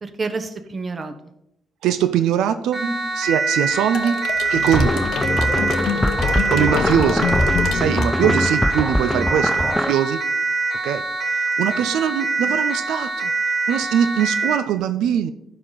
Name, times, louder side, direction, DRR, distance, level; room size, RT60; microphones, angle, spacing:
voice 1, 0.0-1.1 2.7-3.0 5.8-6.5 7.7-7.8 12.4-12.5, right 3 dB, 35° right, 9 dB, 0.9 m, -30 dB
voice 2, 1.8-2.8 3.2-4.2 4.5-5.0 6.5-7.3 7.7-10.2 10.8-13.3 13.7-15.3, right 9 dB, 90° right, 11 dB, 0.4 m, -22 dB
Siren, 2.7-14.7, right 3 dB, 55° right, 2.6 m, -24 dB
sound 1, 3.9-8.8, left 6 dB, 80° left, 0.8 m, -26 dB
sound 2, 4.7-9.9, left 1 dB, 5° left, 0.3 m, -23 dB
11.5 x 4.8 x 3.9 m, 0.80 s
cardioid pair, 90°, 0 cm